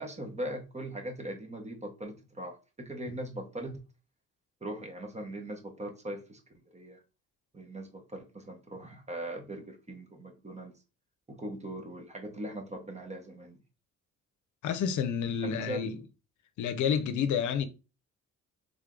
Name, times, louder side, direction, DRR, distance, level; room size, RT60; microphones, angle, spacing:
voice 1, 0.0-3.8 4.6-6.4 6.7-7.0 7.5-10.7 11.3-13.6 15.4-15.9, right 1 dB, 20° right, 1.2 m, -40 dB
voice 2, 14.6-16.0 16.6-17.7, left 7 dB, 75° left, 0.6 m, -29 dB
3.6 x 3.5 x 3.7 m
cardioid pair, 90°, 30 cm